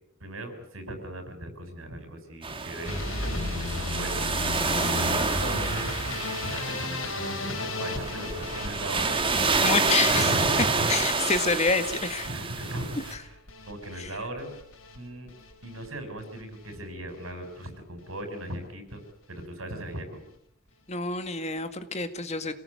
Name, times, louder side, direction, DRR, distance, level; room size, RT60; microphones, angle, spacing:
voice 1, 0.2-5.1 5.4-5.9 6.4-9.2 9.5-10.9 12.3-13.4 13.6-14.5 14.9-15.3 15.6-19.0 19.3-20.2, right 1 dB, 85° right, 7 dB, 6.2 m, -37 dB
sound 1, 2.4-13.1, right 4 dB, 25° right, 1.9 m, -28 dB
sound 2, 2.8-15.0 15.3-15.9 16.2-16.8 17.1-17.3 17.6-17.7 18.0-18.1, left 2 dB, 75° left, 5.5 m, -35 dB
voice 2, 4.7-5.2 9.6-10.3 10.9-12.3 14.0-14.1 20.9-22.5, left 4 dB, 35° left, 9 dB, 2.0 m, -28 dB
27.0 x 19.5 x 8.4 m, 0.73 s
head